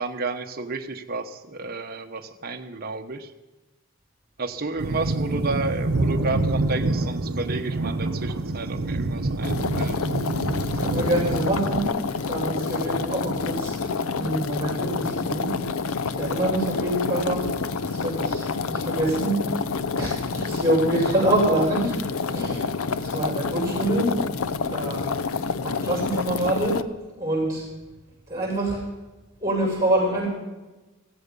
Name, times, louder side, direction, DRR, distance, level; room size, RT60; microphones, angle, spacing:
voice 1, 0.0-3.3 4.4-10.0, right 3 dB, 45° right, 5 dB, 1.1 m, -31 dB
sound 1, 4.8-11.8, right 2 dB, 70° right, 0.9 m, -26 dB
sound 2, 9.4-26.8, left 4 dB, 75° left, 0.5 m, -28 dB
voice 2, 10.8-17.5 17.9-22.7 23.0-24.2 24.6-25.4 25.6-26.9 27.2-27.6 28.3-28.9 29.4-30.3, right 1 dB, 15° right, -2 dB, 7.0 m, -26 dB
16.0 x 15.5 x 5.4 m, 1.1 s
head